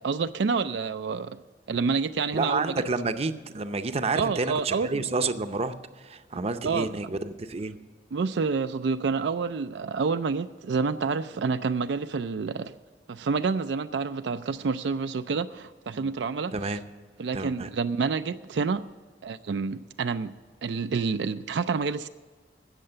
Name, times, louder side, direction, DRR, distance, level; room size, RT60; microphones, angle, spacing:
voice 1, 0.0-1.4 1.7-2.7 4.1-5.0 6.6-6.9 8.1-12.7 13.1-16.8 17.2-18.9 19.2-22.1, right 5 dB, 80° right, 10 dB, 0.4 m, -28 dB
voice 2, 2.3-7.8 15.9-16.1 16.5-16.8 17.3-17.7, right 3 dB, 35° right, 10 dB, 0.6 m, -30 dB
16.5 x 6.5 x 6.7 m, 1.4 s
head